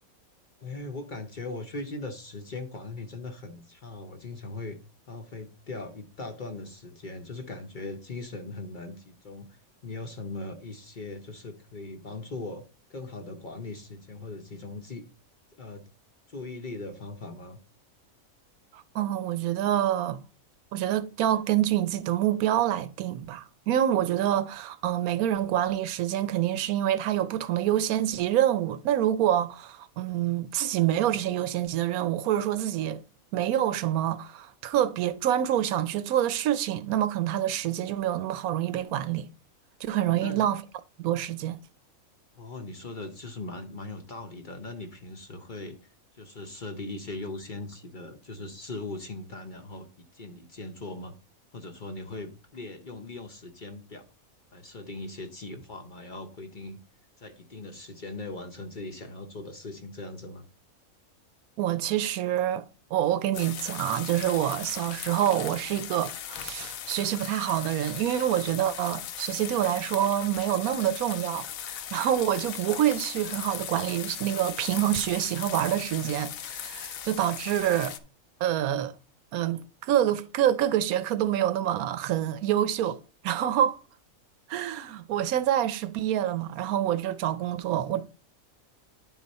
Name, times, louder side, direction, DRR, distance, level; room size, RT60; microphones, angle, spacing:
voice 1, 0.6-4.8 5.1-12.6 12.9-15.1 15.6-15.9 16.3-17.6 40.0-40.5 42.3-51.1 51.5-54.0 54.5-56.8 57.2-60.5, left 2 dB, 45° left, 0.7 m, -40 dB
voice 2, 18.7-20.2 20.7-33.0 33.3-39.3 39.8-40.6 41.0-41.6 61.6-62.6 62.9-78.0 78.4-78.9 79.3-83.8 84.5-88.1, right 11 dB, 85° right, 1.1 m, -27 dB
sound 1, 63.3-78.0, left 10 dB, 75° left, 1.1 m, -38 dB
10.0 x 4.1 x 4.1 m
omnidirectional pair, 1.5 m